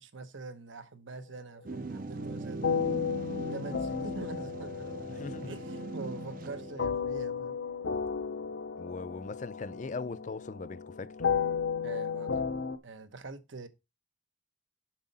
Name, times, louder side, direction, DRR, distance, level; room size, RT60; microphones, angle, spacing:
voice 1, 0.0-2.7 3.5-7.6 11.8-13.7, right 3 dB, 80° right, 1.0 m, -44 dB
sound 1, 1.7-6.9, right 2 dB, 45° right, 0.5 m, -40 dB
sound 2, 2.6-12.8, left 6 dB, 70° left, 0.7 m, -34 dB
voice 2, 5.2-5.6 8.8-11.1, left 4 dB, 40° left, 0.4 m, -40 dB
7.4 x 5.5 x 4.1 m
head